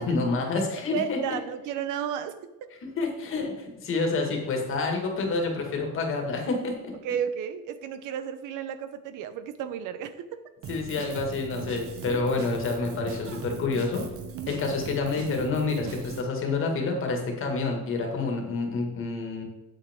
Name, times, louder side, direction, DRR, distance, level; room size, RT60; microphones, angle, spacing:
voice 1, 0.0-1.2 3.0-6.9 10.7-14.0 14.5-19.4, left 3 dB, 45° left, 2 dB, 1.9 m, -28 dB
voice 2, 0.9-2.7 7.0-10.4 12.1-12.2 14.3-14.6, right 8 dB, 80° right, 11 dB, 0.9 m, -33 dB
Drum kit, 10.6-16.2, right 4 dB, 50° right, 1.2 m, -39 dB
8.5 x 8.1 x 3.6 m, 1.0 s
cardioid pair, 175°, 30 cm